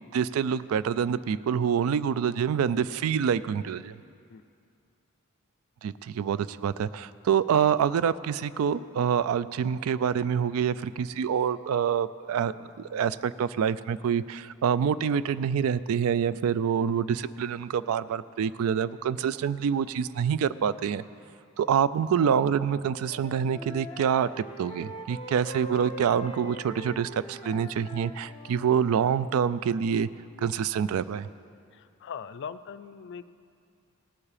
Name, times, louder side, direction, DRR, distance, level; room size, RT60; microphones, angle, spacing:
voice 1, 0.1-3.9 5.8-21.0 21.6-30.1 30.4-31.3, right 7 dB, 70° right, 16 dB, 0.3 m, -26 dB
Wind instrument woodwind instrument, 22.7-29.1, equal, 25° left, 0.7 m, -42 dB
voice 2, 31.7-33.2, left 7 dB, 55° left, 13 dB, 0.4 m, -40 dB
18.0 x 7.3 x 4.9 m, 2.4 s
head